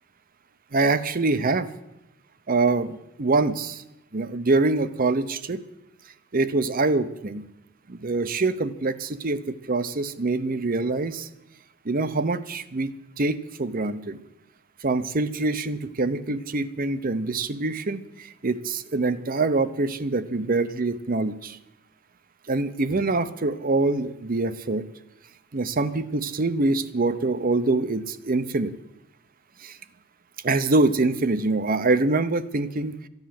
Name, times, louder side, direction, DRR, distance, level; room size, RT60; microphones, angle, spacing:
voice 1, 0.7-1.7 2.5-3.8 4.1-5.6 6.3-7.4 7.9-11.3 11.8-14.2 14.8-21.6 22.5-24.9 25.5-28.7 29.6-29.8 30.4-33.1, right 3 dB, 40° right, 13 dB, 0.7 m, -25 dB
14.0 x 10.5 x 7.6 m, 0.89 s
head